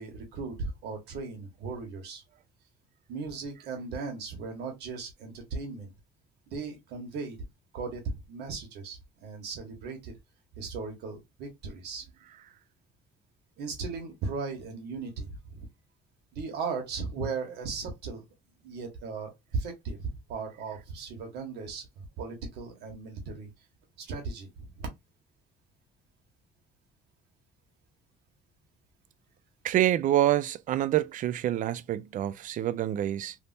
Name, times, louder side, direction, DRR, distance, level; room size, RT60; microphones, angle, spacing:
voice 1, 0.0-2.2 3.1-5.9 6.5-7.5 7.7-8.0 8.3-10.1 10.6-12.0 13.6-15.7 16.3-18.2 18.6-23.5 24.0-24.9, right 4 dB, 80° right, 1.5 m, -37 dB
voice 2, 29.6-33.4, right 12 dB, 50° right, 0.4 m, -27 dB
3.5 x 2.7 x 2.6 m
cardioid pair, 110°, 17 cm